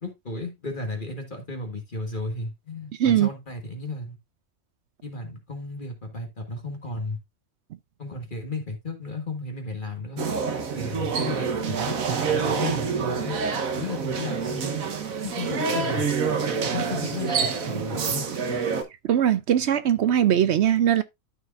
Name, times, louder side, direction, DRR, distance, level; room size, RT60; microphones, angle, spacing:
voice 1, 0.0-4.2 5.0-7.2 8.0-10.2 10.8-13.4 13.7-14.8 15.2-16.1 16.7-18.2, left 2 dB, 35° left, 1.7 m, -34 dB
sound 1, 10.2-18.8, right 5 dB, 80° right, 1.5 m, -27 dB
voice 2, 19.0-21.0, right 10 dB, 65° right, 0.7 m, -20 dB
13.0 x 4.6 x 2.5 m
omnidirectional pair, 1.4 m